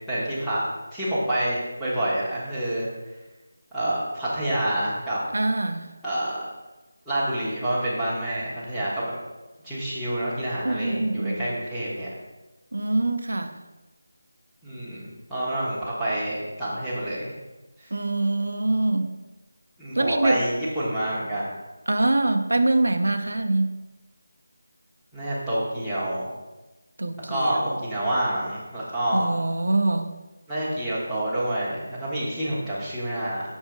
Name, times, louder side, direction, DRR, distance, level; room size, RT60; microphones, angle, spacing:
voice 1, 0.1-0.6 0.9-2.9 3.7-5.2 6.0-6.4 7.0-9.2 9.6-12.1 14.6-17.3 17.8-17.9 19.8-21.5 25.1-26.3 27.3-29.3 30.5-33.4, right 1 dB, ahead, -14 dB, 1.3 m, -27 dB
voice 2, 5.3-5.9 10.6-11.5 12.7-13.5 17.9-19.1 19.9-20.4 21.9-23.7 27.0-27.8 29.1-30.1, right 2 dB, 75° right, 9 dB, 0.6 m, -24 dB
6.1 x 3.6 x 5.1 m, 1.1 s
figure-of-eight pair, 170°, 0 cm